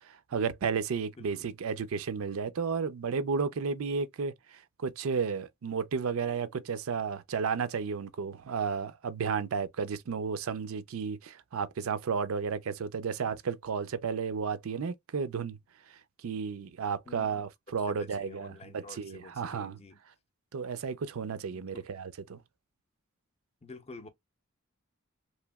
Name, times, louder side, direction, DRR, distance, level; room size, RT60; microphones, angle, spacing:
voice 1, 0.0-15.6 15.9-19.8 20.5-22.4, right 5 dB, 80° right, 0.4 m, -33 dB
voice 2, 0.9-1.3 17.1-17.3 17.7-20.0 21.2-21.9 23.6-24.1, left 3 dB, 30° left, 0.5 m, -49 dB
3.0 x 2.7 x 2.2 m
head